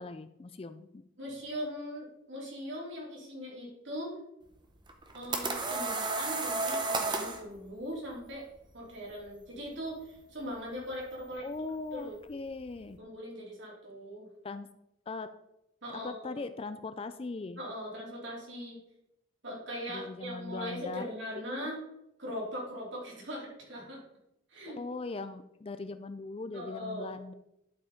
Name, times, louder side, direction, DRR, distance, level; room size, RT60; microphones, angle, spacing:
voice 1, 0.0-1.0 11.4-13.0 14.4-14.7 15.1-15.3 15.9-17.6 19.9-21.1 21.6-21.7 24.7-27.3, left 3 dB, 25° left, 11 dB, 0.3 m, -40 dB
voice 2, 1.2-4.2 5.1-8.4 8.7-11.4 11.9-12.2 13.0-14.3 15.8-16.4 17.6-18.8 19.4-21.8 22.2-24.0 24.5-24.8 26.5-27.2, equal, 55° right, -3 dB, 3.2 m, -40 dB
sound 1, 4.9-7.4, right 3 dB, 20° right, 0.8 m, -32 dB
11.0 x 4.8 x 5.0 m, 0.84 s
head